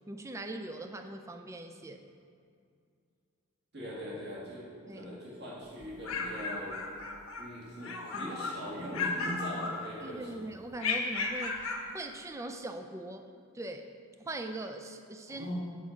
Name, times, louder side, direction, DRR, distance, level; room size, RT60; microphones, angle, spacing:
voice 1, 0.1-2.0 4.9-5.1 8.1-8.4 10.0-13.3 13.5-13.9 14.2-15.5, right 2 dB, 15° right, 6 dB, 0.4 m, -41 dB
voice 2, 3.7-4.7 4.9-6.8 7.4-10.4 15.3-15.5, equal, 50° right, -6 dB, 1.9 m, -41 dB
sound 1, 5.8-7.5 7.8-8.6 8.9-10.2 10.8-11.9, left 4 dB, 80° left, 1.1 m, -35 dB
8.7 x 5.1 x 7.1 m, 2.3 s
head